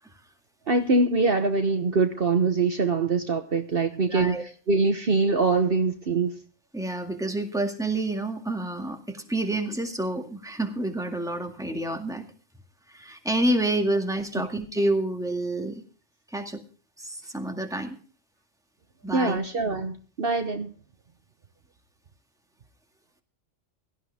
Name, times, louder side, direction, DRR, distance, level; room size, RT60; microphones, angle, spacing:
voice 1, 0.7-4.4 4.7-6.3 14.4-14.5 19.1-20.7, right 3 dB, 50° right, 7 dB, 1.3 m, -23 dB
voice 2, 4.1-4.4 6.7-12.3 12.9-15.8 16.3-16.6 17.0-18.0 19.0-19.4, right 1 dB, 5° right, 4 dB, 2.0 m, -28 dB
17.0 x 12.5 x 3.5 m, 0.39 s
omnidirectional pair, 1.3 m